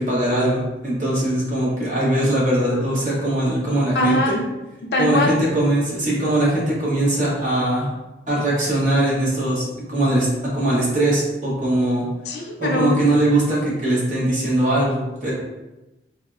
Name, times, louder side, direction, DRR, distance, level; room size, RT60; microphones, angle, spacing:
voice 1, 0.0-4.4 5.0-7.9 8.3-12.0 12.6-15.3, right 1 dB, 45° right, -6 dB, 0.9 m, -21 dB
voice 2, 3.9-4.5 4.9-5.4 12.3-13.0, left 2 dB, 65° left, 0 dB, 0.4 m, -21 dB
3.4 x 2.0 x 2.4 m, 1.0 s
head